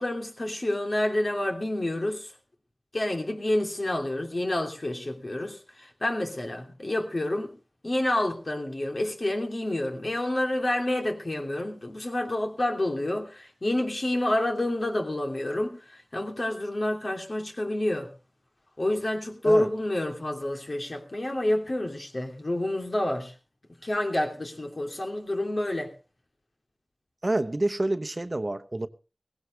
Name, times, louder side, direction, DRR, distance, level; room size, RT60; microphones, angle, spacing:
voice 1, 0.0-2.3 2.9-7.5 7.8-18.1 18.8-23.3 23.8-25.9, left 1 dB, 60° left, 2.9 m, -28 dB
voice 2, 27.2-28.9, right 2 dB, 45° right, 0.9 m, -28 dB
17.5 x 16.0 x 3.3 m
wide cardioid pair, 40°, 0 cm